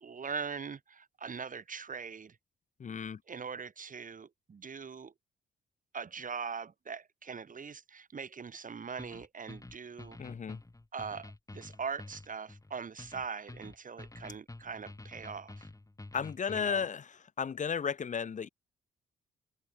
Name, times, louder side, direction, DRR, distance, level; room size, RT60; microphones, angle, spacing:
voice 1, 0.0-2.4 3.3-5.1 5.9-10.2 10.9-15.7 16.5-16.9, right 6 dB, 45° right, 2.1 m, -41 dB
voice 2, 2.8-3.2 10.2-10.6 16.1-17.1 17.4-18.5, left 6 dB, 40° left, 0.9 m, -34 dB
sound 1, 9.0-16.9, left 2 dB, 15° left, 3.1 m, -49 dB
open air
hypercardioid pair, 50°, 20 cm